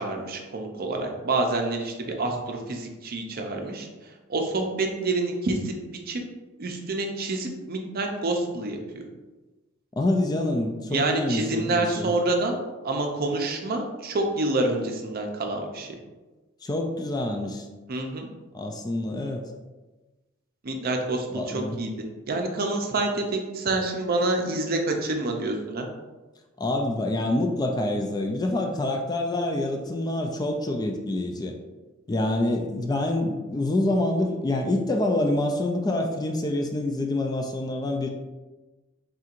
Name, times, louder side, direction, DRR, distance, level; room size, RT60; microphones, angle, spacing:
voice 1, 0.0-3.9 4.3-5.7 6.1-6.2 6.6-9.0 10.9-12.6 12.8-16.0 17.9-18.3 20.6-21.9 22.3-25.9, right 2 dB, 50° right, 3 dB, 0.6 m, -27 dB
voice 2, 10.0-12.1 16.6-17.7 18.5-19.5 21.3-21.8 26.6-31.5 32.1-38.1, left 1 dB, 20° left, 3 dB, 0.3 m, -26 dB
4.3 x 3.7 x 2.5 m, 1.2 s
head